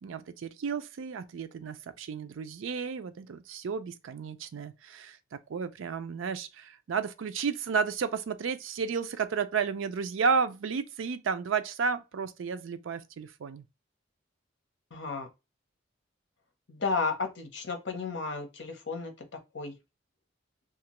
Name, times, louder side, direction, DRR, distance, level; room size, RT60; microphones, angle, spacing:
voice 1, 0.0-5.2 5.5-13.6, right 5 dB, 85° right, 0.4 m, -32 dB
voice 2, 14.9-15.3 16.7-19.1 19.5-19.7, left 4 dB, 65° left, 0.8 m, -33 dB
2.8 x 2.4 x 2.9 m
head